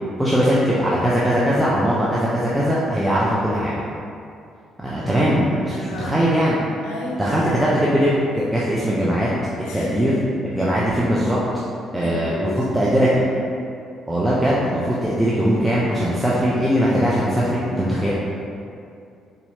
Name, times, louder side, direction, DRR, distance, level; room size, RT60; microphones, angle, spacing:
voice 1, 0.2-3.7 4.8-6.6 7.2-9.3 9.7-10.1 10.5-11.4 11.9-13.2 14.1-18.1, equal, 10° right, -7 dB, 0.6 m, -20 dB
voice 2, 5.7-6.3 6.8-7.2 9.6-10.1 12.0-12.7 12.9-13.1, left 2 dB, 80° left, -3 dB, 0.5 m, -32 dB
4.2 x 2.8 x 2.8 m, 2.5 s
hypercardioid pair, 50°, 0 cm